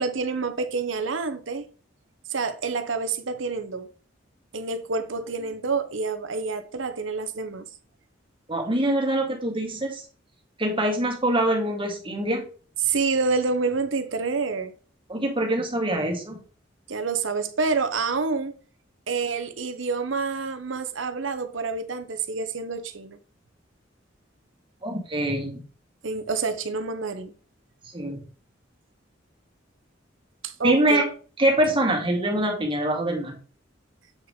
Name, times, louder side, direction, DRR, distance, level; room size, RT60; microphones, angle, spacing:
voice 1, 0.0-1.6 2.3-3.9 4.5-7.6 12.8-14.7 16.9-18.5 19.1-23.2 26.0-27.3 30.4-31.1, right 4 dB, 85° right, 0.9 m, -27 dB
voice 2, 8.5-10.0 10.6-12.5 15.1-16.4 24.8-25.5 27.9-28.2 30.6-31.1 31.4-33.4, right 1 dB, 30° right, 1.9 m, -24 dB
8.1 x 4.7 x 3.6 m
head